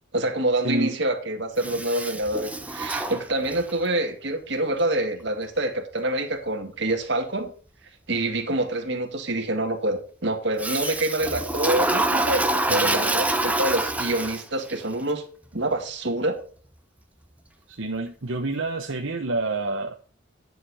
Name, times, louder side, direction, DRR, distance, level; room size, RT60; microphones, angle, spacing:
voice 1, 0.1-7.5 8.1-15.2 15.5-16.4, right 1 dB, 60° right, 2.0 m, -26 dB
voice 2, 0.6-1.0 12.7-13.3 17.7-20.0, right 2 dB, 75° right, 1.0 m, -28 dB
Toilet flush, 1.6-3.8 10.6-14.7, right 2 dB, 5° right, 0.8 m, -26 dB
10.5 x 6.7 x 4.2 m
head